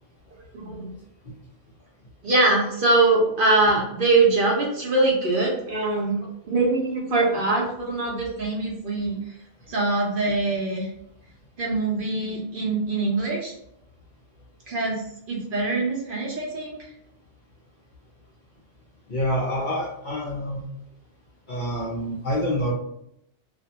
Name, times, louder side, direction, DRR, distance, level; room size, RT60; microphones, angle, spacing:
voice 1, 0.6-0.9 2.2-9.2 9.7-10.9 11.6-13.5 14.7-15.0 15.3-16.8, right 2 dB, 55° right, -3 dB, 0.7 m, -23 dB
voice 2, 19.1-20.6 21.5-22.7, equal, 55° left, -5 dB, 0.6 m, -27 dB
2.4 x 2.1 x 2.7 m, 0.76 s
omnidirectional pair, 1.3 m